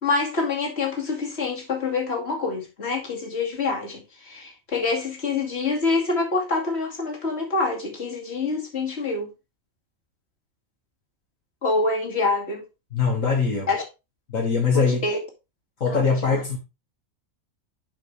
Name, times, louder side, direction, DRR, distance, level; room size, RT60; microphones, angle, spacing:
voice 1, 0.0-9.3 11.6-12.6 13.7-13.8 15.0-15.2 15.9-16.4, left 3 dB, 50° left, 2.6 m, -26 dB
voice 2, 12.9-13.7 14.3-15.0 15.8-16.6, left 5 dB, 75° left, 2.1 m, -22 dB
11.0 x 5.2 x 3.4 m
omnidirectional pair, 1.4 m